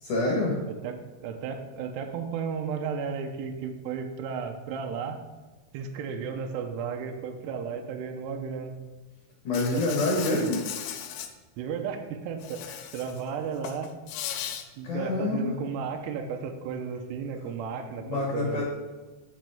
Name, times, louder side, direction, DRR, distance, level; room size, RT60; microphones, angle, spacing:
voice 1, 0.0-0.5 9.4-10.6 14.8-15.5 18.0-18.6, left 2 dB, 65° left, -3 dB, 2.0 m, -26 dB
voice 2, 0.7-5.2 5.7-8.7 9.7-9.8 10.2-10.5 11.6-14.0 14.8-18.6, right 6 dB, 80° right, 4 dB, 2.5 m, -34 dB
Insect, 9.5-11.3 12.4-13.2 13.5-14.6, left 10 dB, 85° left, 2.9 m, -37 dB
13.5 x 5.4 x 3.5 m, 1.2 s
omnidirectional pair, 5.6 m